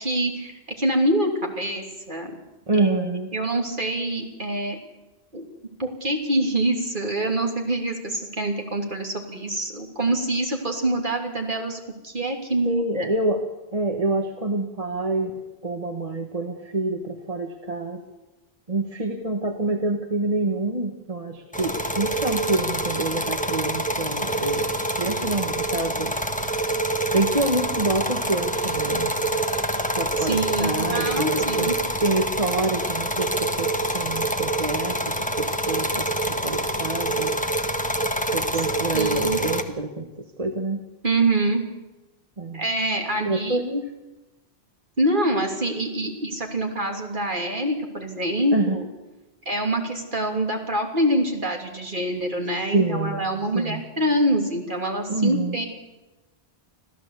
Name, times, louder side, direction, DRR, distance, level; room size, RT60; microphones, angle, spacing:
voice 1, 0.0-2.3 2.7-4.8 5.3-5.5 5.8-13.1 30.2-31.8 38.9-39.4 41.0-41.6 42.5-43.6 45.0-48.8 49.4-55.6, right 1 dB, 50° right, 2 dB, 3.4 m, -25 dB
voice 2, 2.7-3.3 12.6-13.4 13.7-15.3 15.6-18.0 18.7-26.1 27.1-29.1 30.0-31.7 32.0-37.3 38.3-40.1 40.4-40.8 42.4-42.6 43.2-43.9 48.5-48.8 52.7-53.3 53.5-53.8 55.1-55.6, right 2 dB, 35° right, 4 dB, 1.5 m, -27 dB
sound 1, 21.5-39.6, right 1 dB, 5° left, 1.4 m, -26 dB
26.0 x 15.5 x 8.3 m, 1.1 s
omnidirectional pair, 1.1 m